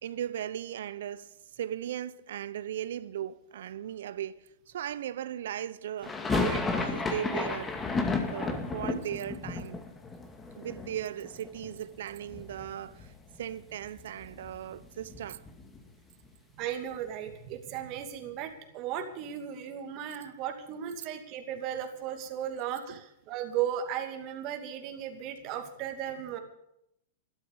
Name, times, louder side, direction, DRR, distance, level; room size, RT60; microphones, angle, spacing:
voice 1, 0.0-7.8 8.3-9.8 10.5-13.1 13.4-15.4 22.9-23.0, right 10 dB, 70° right, 0.8 m, -37 dB
sound 1, 6.0-12.0 12.2-13.1 13.4-13.5 13.7-15.9, left 3 dB, 15° left, 2.2 m, -33 dB
voice 2, 16.6-26.4, right 9 dB, 45° right, 2.6 m, -36 dB
13.0 x 12.0 x 8.2 m
hypercardioid pair, 115°, 0 cm